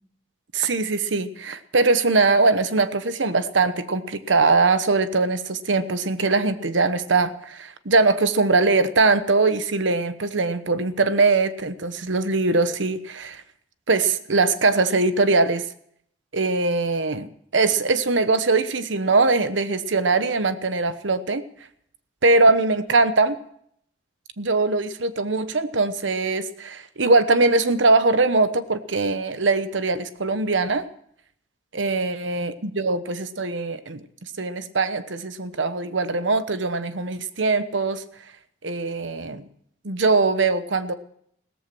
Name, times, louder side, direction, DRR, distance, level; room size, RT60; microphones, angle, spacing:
voice 1, 0.5-13.4 13.9-15.7 16.3-21.4 22.2-23.4 24.4-30.9 31.7-34.0 34.4-38.0 38.6-39.5 39.8-40.9, right 3 dB, 75° right, 12 dB, 1.1 m, -21 dB
16.5 x 14.0 x 6.1 m, 0.68 s
head